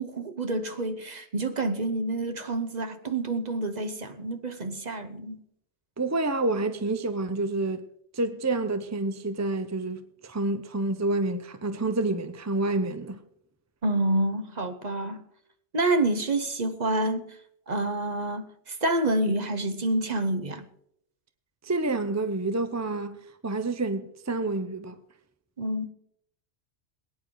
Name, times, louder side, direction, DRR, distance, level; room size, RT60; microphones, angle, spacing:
voice 1, 0.0-5.4 13.8-15.2 15.7-17.4 17.7-20.7 25.6-25.9, right 2 dB, 40° right, 1.1 m, -28 dB
voice 2, 6.0-7.9 8.1-13.2 21.6-23.2 23.4-25.0, right 2 dB, 20° right, 0.6 m, -28 dB
22.0 x 9.6 x 3.9 m
omnidirectional pair, 1.2 m